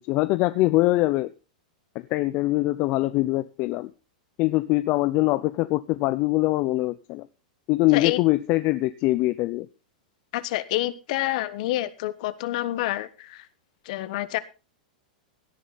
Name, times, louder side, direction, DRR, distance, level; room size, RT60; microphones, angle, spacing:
voice 1, 0.0-1.3 2.1-3.9 4.4-7.3 7.7-9.7, left 19 dB, 45° left, 0.6 m, -23 dB
voice 2, 10.3-13.5 13.8-14.4, left 16 dB, 60° left, 1.3 m, -28 dB
17.0 x 10.0 x 4.1 m
hypercardioid pair, 125°, 4 cm